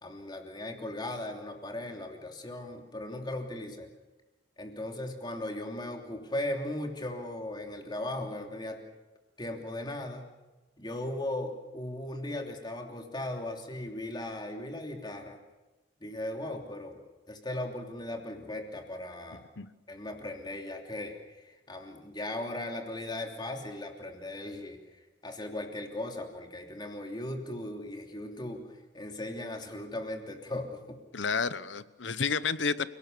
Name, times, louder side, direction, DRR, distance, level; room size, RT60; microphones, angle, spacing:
voice 1, 0.0-3.9 4.6-8.8 9.4-10.3 10.8-15.4 16.0-17.0 17.3-19.4 19.9-24.8 25.2-28.6 28.9-31.0, left 1 dB, 25° left, 2 dB, 3.1 m, -37 dB
voice 2, 31.1-32.9, left 5 dB, 75° left, 15 dB, 1.0 m, -30 dB
29.0 x 18.5 x 6.8 m, 1.1 s
head